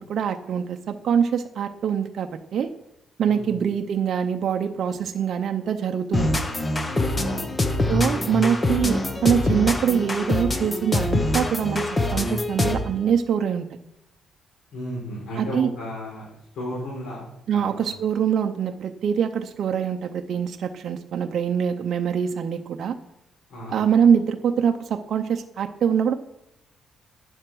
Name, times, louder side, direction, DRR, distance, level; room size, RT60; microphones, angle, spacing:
voice 1, 0.0-2.7 3.2-6.6 7.9-13.7 15.4-15.7 17.5-23.0 23.7-26.1, right 7 dB, 50° right, 5 dB, 0.6 m, -24 dB
sound 1, 6.1-13.0, left 2 dB, 15° left, 0.8 m, -24 dB
voice 2, 6.9-7.6 14.7-17.2 17.5-18.0 23.5-23.8, equal, 85° left, -5 dB, 4.3 m, -34 dB
9.9 x 7.8 x 6.1 m, 0.83 s
cardioid pair, 155°, 0 cm